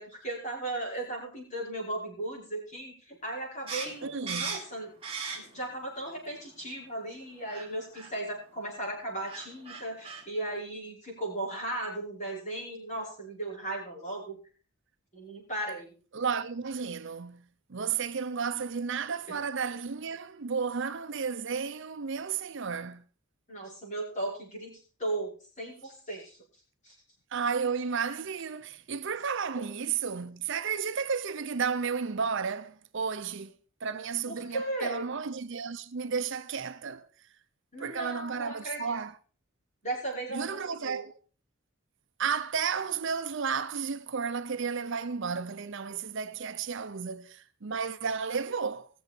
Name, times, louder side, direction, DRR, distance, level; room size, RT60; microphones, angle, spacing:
voice 1, 0.0-4.9 5.4-14.4 15.1-15.9 19.3-19.4 23.5-26.4 26.8-27.0 29.5-29.6 34.3-35.1 37.7-39.0 39.8-41.1, right 2 dB, 30° left, 5.4 m, -36 dB
sound 1, 3.7-5.7 6.1-6.9 7.5-7.7 7.9-8.1 8.9-9.0 9.2-10.2, right 5 dB, 25° right, 2.7 m, -38 dB
voice 2, 4.0-4.6 16.1-17.4 17.7-23.0 27.3-33.5 33.8-37.1 37.8-39.1 40.3-41.1 42.2-48.9, right 6 dB, 55° right, 0.6 m, -33 dB
20.0 x 6.9 x 4.4 m
head